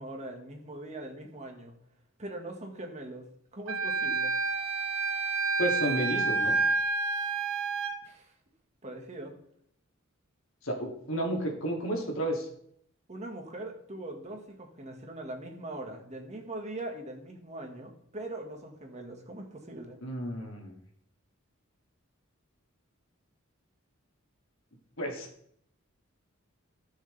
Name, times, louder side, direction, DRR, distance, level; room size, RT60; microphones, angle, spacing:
voice 1, 0.0-1.7 2.2-4.4 8.1-8.3 8.8-9.4 13.1-20.0, right 1 dB, 35° right, 3 dB, 1.7 m, -41 dB
Wind instrument woodwind instrument, 3.7-8.0, right 4 dB, 90° right, 1.4 m, -29 dB
voice 2, 5.6-6.6 10.6-12.5 20.0-20.8 25.0-25.3, right 1 dB, 70° left, 1 dB, 2.6 m, -32 dB
16.0 x 6.5 x 3.4 m, 0.68 s
head